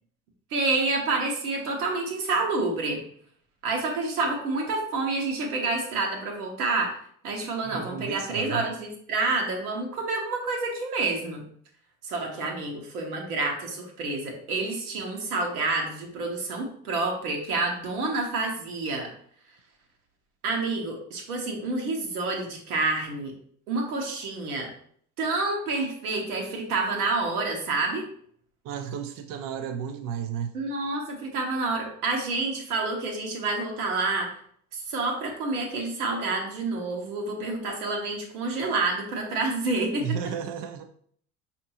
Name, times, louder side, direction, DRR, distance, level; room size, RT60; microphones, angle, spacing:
voice 1, 0.5-3.0 3.6-6.9 7.2-11.4 12.0-19.1 20.4-23.3 23.7-24.7 25.2-28.1 30.5-34.3 34.7-40.0, right 3 dB, 80° right, 1 dB, 1.0 m, -28 dB
voice 2, 7.6-8.6 28.6-30.5 40.0-40.9, right 8 dB, 50° right, 7 dB, 0.5 m, -33 dB
5.1 x 2.7 x 2.8 m, 0.62 s
hypercardioid pair, 65°, 45 cm